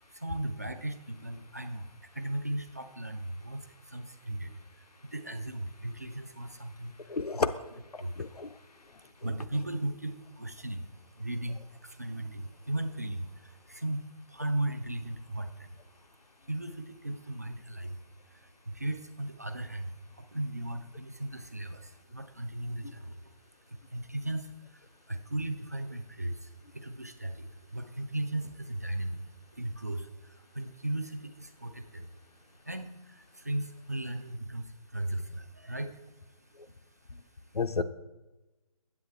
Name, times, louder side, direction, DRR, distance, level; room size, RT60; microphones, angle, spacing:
voice 1, 0.0-7.2 8.0-8.3 9.0-16.0 16.4-18.0 18.3-23.3 23.7-32.1 32.5-36.1 36.5-36.7, right 1 dB, 25° right, 8 dB, 0.3 m, -37 dB
voice 2, 7.1-7.5 7.9-8.6 22.8-22.9 37.1-37.2 37.5-37.8, left 4 dB, 75° left, 10 dB, 0.6 m, -31 dB
8.2 x 8.2 x 3.3 m, 1.1 s
figure-of-eight pair, 155°, 20 cm